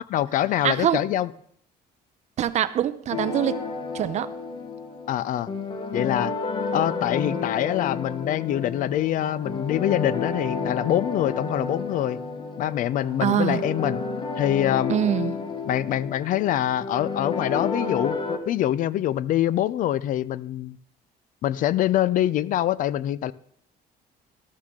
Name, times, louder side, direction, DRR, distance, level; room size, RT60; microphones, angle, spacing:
voice 1, 0.1-1.3 5.1-5.5 5.9-6.3 6.7-12.2 12.6-14.0 14.4-14.9 15.7-18.2 18.5-20.8 21.4-23.3, left 12 dB, 50° left, 19 dB, 0.4 m, -24 dB
voice 2, 0.6-1.0 2.4-3.6 3.9-4.3 13.2-13.6 14.9-15.4, right 10 dB, 40° right, 14 dB, 0.5 m, -24 dB
sound 1, 3.1-18.4, left 4 dB, 30° left, 0.9 m, -31 dB
13.0 x 12.5 x 3.6 m, 0.64 s
cardioid pair, 180°, 18 cm